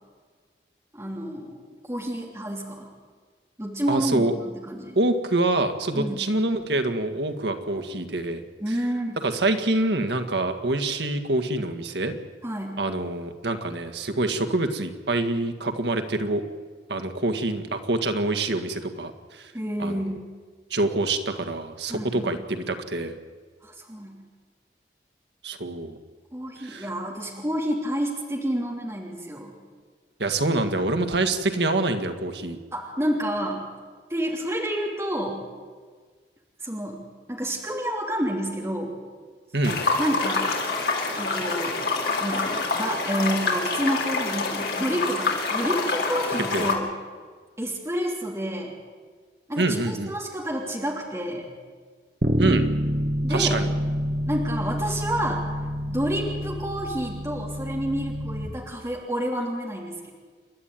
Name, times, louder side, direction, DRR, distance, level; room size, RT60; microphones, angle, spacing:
voice 1, 0.9-1.6 1.9-2.9 3.6-4.3 4.5-5.0 5.9-6.3 8.6-9.2 12.4-12.8 19.5-20.3 21.9-22.3 23.6-24.2 26.3-29.5 32.7-33.6 34.1-35.4 36.6-37.0 37.3-39.0 40.0-40.5 41.2-41.9 42.2-46.9 47.6-48.7 49.5-51.5 53.2-53.6 54.3-55.5 55.9-60.1, equal, 15° right, -1 dB, 3.1 m, -29 dB
voice 2, 3.9-4.3 5.0-8.4 9.2-12.2 12.8-16.4 16.9-19.5 19.8-20.0 20.7-23.1 25.4-26.0 26.6-26.9 30.2-32.6 39.5-39.8 46.5-46.6 49.6-50.1 52.4-52.6 53.3-53.7, right 2 dB, 85° right, 8 dB, 1.8 m, -26 dB
sound 1, 39.6-46.7, left 3 dB, 65° left, 3.6 m, -26 dB
Bass guitar, 52.2-58.5, equal, 50° right, 1.6 m, -27 dB
29.0 x 12.0 x 9.2 m, 1.5 s
head